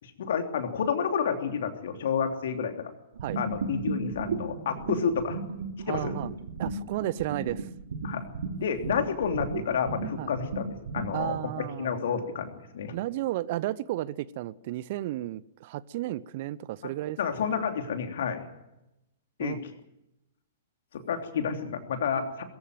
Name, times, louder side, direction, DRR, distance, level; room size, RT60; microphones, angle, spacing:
voice 1, 0.0-2.7 3.4-5.4 5.9-6.2 8.0-8.3 8.6-12.9 16.8-16.9 17.2-18.4 19.4-19.6 20.9-22.4, left 6 dB, 55° left, 6 dB, 3.1 m, -30 dB
sound 1, 3.1-11.4, right 4 dB, 60° right, 2.8 m, -35 dB
voice 2, 5.8-6.3 6.6-7.7 10.2-10.3 11.1-12.0 12.9-17.2 19.4-19.6, right 15 dB, 45° right, 21 dB, 0.7 m, -33 dB
22.5 x 15.5 x 9.4 m, 0.91 s
figure-of-eight pair, 105°, 0 cm